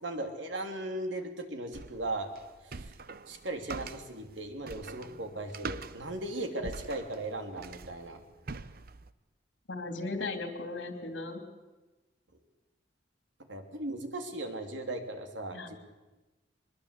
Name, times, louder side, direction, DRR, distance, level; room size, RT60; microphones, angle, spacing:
voice 1, 0.0-2.3 2.6-2.9 3.3-8.2 13.5-15.8, right 1 dB, 85° right, 5 dB, 3.2 m, -37 dB
sound 1, 1.7-9.1, right 4 dB, 55° right, 0.8 m, -44 dB
voice 2, 9.7-11.4 15.5-15.8, left 3 dB, 85° left, 6 dB, 3.2 m, -37 dB
23.0 x 21.5 x 8.4 m, 1.1 s
head